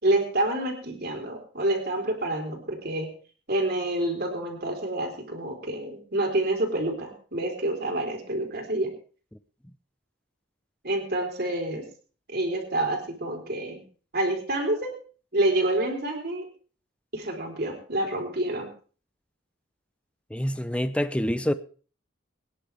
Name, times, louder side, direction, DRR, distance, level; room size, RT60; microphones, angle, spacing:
voice 1, 0.0-3.1 3.5-8.9 10.8-11.8 12.3-13.8 14.1-14.9 15.3-16.5 17.1-18.7, right 1 dB, 50° right, 4.0 m, -28 dB
voice 2, 20.3-21.5, equal, 5° left, 0.6 m, -26 dB
24.0 x 10.5 x 3.5 m
head